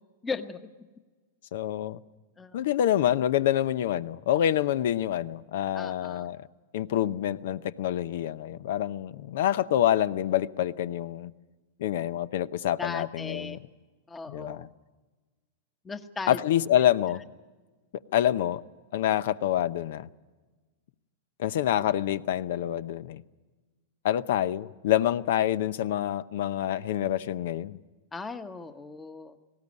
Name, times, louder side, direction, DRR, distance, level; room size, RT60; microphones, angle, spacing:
voice 1, 0.2-0.6 2.4-2.6 5.7-6.3 12.8-13.6 14.1-14.7 15.8-16.4 28.1-29.4, left 4 dB, 15° left, 1.2 m, -37 dB
voice 2, 1.5-2.0 2.5-6.5 6.7-11.3 11.8-13.6 14.3-14.7 16.3-17.2 18.1-18.6 18.9-20.1 21.4-23.2 24.0-27.8, left 11 dB, 70° left, 0.7 m, -27 dB
19.0 x 16.5 x 9.5 m
hypercardioid pair, 120°, 0 cm